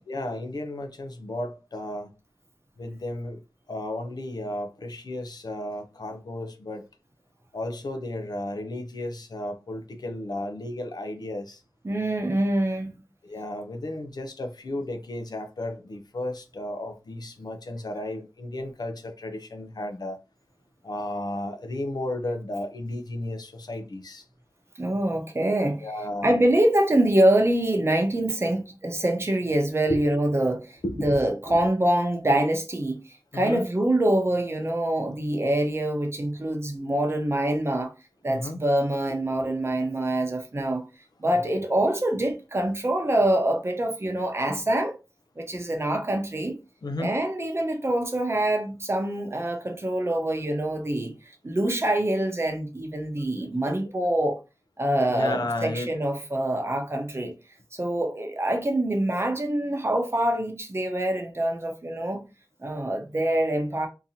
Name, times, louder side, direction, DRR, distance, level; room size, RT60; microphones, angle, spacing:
voice 1, 0.0-2.1 2.8-3.4 3.7-6.8 7.5-11.6 13.2-20.2 20.8-24.2 25.8-26.4 29.9-30.0 30.8-31.2 31.5-31.6 33.3-33.7 38.3-38.6 39.1-39.2 39.4-39.5 41.4-41.5 46.8-47.2 53.4-53.8 55.1-55.9, left 1 dB, 70° left, 0.6 m, -33 dB
voice 2, 11.8-13.0 24.8-25.9 26.2-33.0 33.3-37.9 38.2-40.8 41.2-44.9 45.4-46.6 47.0-51.1 51.4-54.4 54.8-57.3 57.7-62.2 62.6-63.9, right 1 dB, 40° right, 0.8 m, -25 dB
3.9 x 2.9 x 2.7 m
wide cardioid pair, 80°, 7 cm